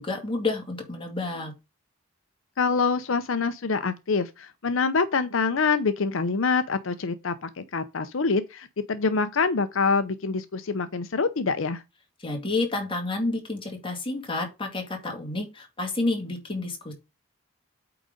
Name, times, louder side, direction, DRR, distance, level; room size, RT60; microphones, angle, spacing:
voice 1, 0.0-1.5 12.2-16.9, left 2 dB, 25° left, 2.3 m, -30 dB
voice 2, 2.6-11.8, left 4 dB, 70° left, 0.6 m, -25 dB
8.6 x 3.9 x 5.2 m
head